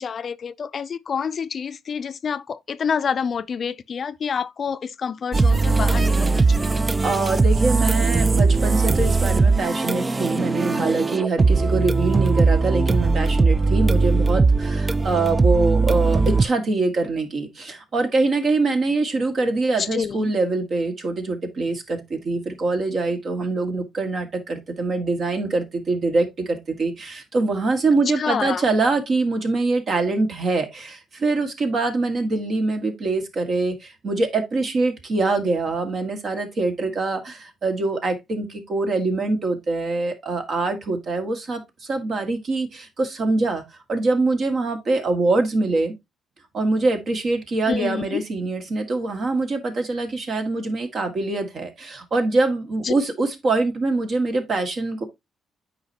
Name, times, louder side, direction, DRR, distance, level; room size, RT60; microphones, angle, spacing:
voice 1, 0.0-6.8 19.8-20.3 28.2-28.6 47.7-48.2 52.8-52.9, left 6 dB, 50° left, 0.4 m, -28 dB
sound 1, 5.3-16.5, right 3 dB, 25° right, 0.4 m, -19 dB
voice 2, 7.0-43.6 43.9-45.9 46.5-55.0, right 3 dB, 50° right, 1.9 m, -24 dB
8.7 x 5.0 x 2.9 m
cardioid pair, 90°, 0 cm